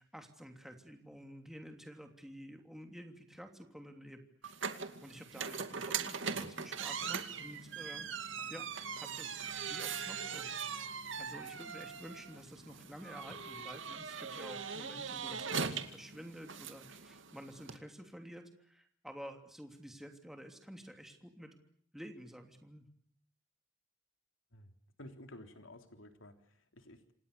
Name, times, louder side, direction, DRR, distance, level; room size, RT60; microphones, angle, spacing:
voice 1, 0.0-8.1 8.5-8.7 9.0-10.8 11.2-21.6 21.9-22.9, equal, ahead, 4 dB, 3.0 m, -51 dB
sound 1, 4.4-17.8, right 6 dB, 75° right, 2.4 m, -41 dB
voice 2, 25.0-27.1, left 1 dB, 90° left, 6 dB, 3.5 m, -53 dB
28.5 x 26.5 x 6.9 m, 0.63 s
head